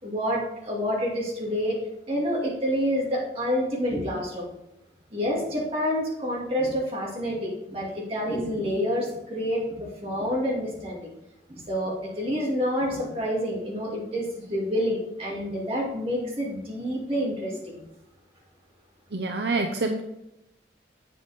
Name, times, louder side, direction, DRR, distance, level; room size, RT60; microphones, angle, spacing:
voice 1, 0.0-1.8 2.1-4.5 5.1-11.1 11.5-17.8, equal, 35° right, -4 dB, 2.6 m, -28 dB
voice 2, 19.1-20.0, right 3 dB, 65° right, 4 dB, 0.7 m, -26 dB
8.3 x 7.8 x 3.5 m, 0.89 s
head